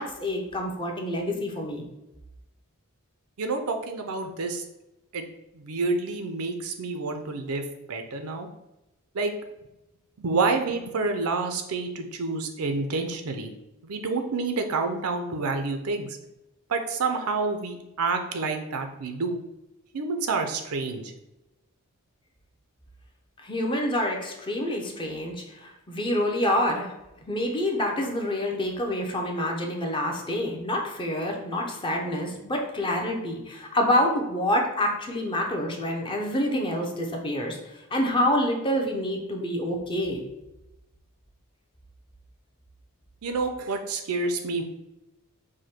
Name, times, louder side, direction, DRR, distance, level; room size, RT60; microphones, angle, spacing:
voice 1, 0.0-1.8 23.4-26.9 27.3-37.6 37.9-40.2, left 1 dB, 20° left, 1 dB, 0.7 m, -27 dB
voice 2, 3.4-4.7 5.1-5.2 5.5-8.5 9.1-9.3 10.2-13.5 13.8-16.2 16.7-19.4 19.9-21.1 43.2-44.6, right 3 dB, 70° right, 6 dB, 0.6 m, -28 dB
4.9 x 2.2 x 4.3 m, 0.95 s
head